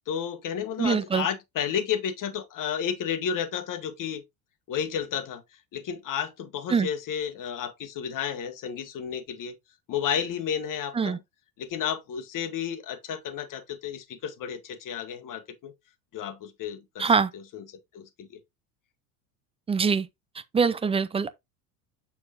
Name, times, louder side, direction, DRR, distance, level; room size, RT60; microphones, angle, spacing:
voice 1, 0.1-4.2 4.7-5.4 5.7-9.6 9.9-11.2 11.6-15.7 16.1-17.6 17.9-18.3, left 8 dB, 40° left, 1.3 m, -32 dB
voice 2, 0.8-1.3 6.7-6.9 11.0-11.2 17.0-17.3 19.7-20.1 20.5-21.3, right 5 dB, 15° right, 0.4 m, -23 dB
7.0 x 6.5 x 2.5 m
hypercardioid pair, 75°, 49 cm